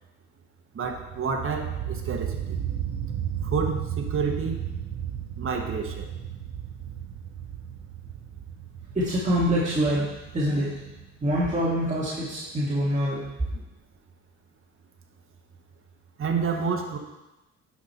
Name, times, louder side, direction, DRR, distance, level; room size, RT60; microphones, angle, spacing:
voice 1, 0.7-2.6 3.4-4.7 5.4-6.1 13.5-13.6 16.2-17.0, right 5 dB, 45° right, 3 dB, 1.2 m, -29 dB
sound 1, 0.8-12.4, right 9 dB, 75° right, 0.9 m, -34 dB
voice 2, 9.0-10.8 11.2-13.2, equal, 25° right, -7 dB, 2.0 m, -25 dB
10.5 x 5.3 x 4.3 m, 1.0 s
cardioid pair, 90°, 30 cm